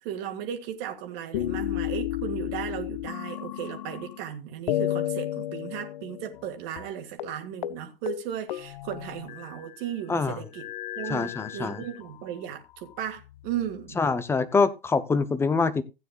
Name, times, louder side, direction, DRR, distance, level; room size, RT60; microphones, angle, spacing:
voice 1, 0.0-10.7 11.0-14.0, right 10 dB, 35° right, 1.9 m, -36 dB
sound 1, 1.3-4.3 4.7-6.5 6.8-6.9 7.2-7.4 7.6-7.8 8.1-9.8 10.5-12.1 12.8-13.7, left 13 dB, 55° left, 0.5 m, -33 dB
voice 2, 11.1-11.8 14.0-15.8, left 4 dB, 10° left, 0.7 m, -25 dB
15.5 x 9.2 x 2.4 m
hypercardioid pair, 115°, 29 cm